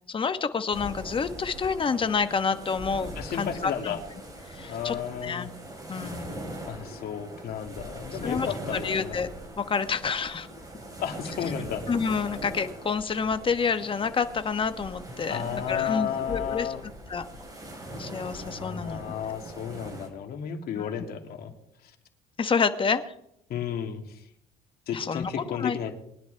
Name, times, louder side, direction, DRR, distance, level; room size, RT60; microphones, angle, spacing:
voice 1, 0.1-3.9 4.5-5.0 5.2-5.5 5.9-6.4 8.2-8.5 8.8-9.3 9.6-10.5 11.9-16.7 17.1-17.2 18.0-19.0 20.7-20.9 22.4-23.1 24.9-25.3 25.6-25.8, left 5 dB, 30° left, 9 dB, 1.2 m, -28 dB
sound 1, 0.7-20.1, right 1 dB, 20° right, 3.5 m, -41 dB
voice 2, 3.2-4.0 4.7-5.5 6.7-9.2 11.0-11.8 15.3-16.8 18.4-21.5 21.8-21.9 23.5-24.3 24.9-26.0, left 8 dB, 65° left, 3 dB, 2.4 m, -33 dB
22.5 x 11.0 x 3.4 m, 0.75 s
cardioid pair, 110°, 17 cm